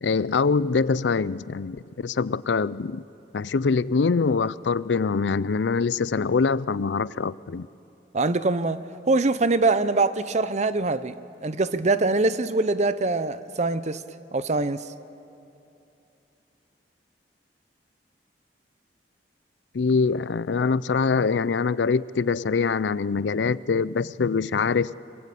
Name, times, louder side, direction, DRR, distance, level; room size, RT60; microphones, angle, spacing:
voice 1, 0.0-3.0 3.3-7.7 19.7-25.0, left 4 dB, 85° left, 0.5 m, -24 dB
voice 2, 8.1-11.2 11.4-14.0 14.3-14.9, right 3 dB, 40° right, 0.8 m, -23 dB
26.0 x 24.0 x 8.4 m
head